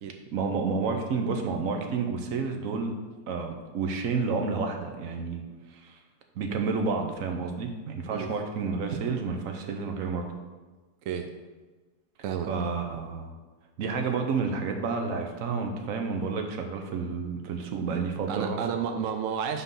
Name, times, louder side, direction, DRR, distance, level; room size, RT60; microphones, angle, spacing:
voice 1, 0.3-3.0 3.3-5.4 5.7-6.0 6.4-10.3 12.5-13.4 13.8-18.6, right 4 dB, 60° right, 4 dB, 1.0 m, -30 dB
voice 2, 18.3-19.6, right 7 dB, 75° right, 6 dB, 0.7 m, -31 dB
6.0 x 3.8 x 5.4 m, 1.3 s
omnidirectional pair, 1.9 m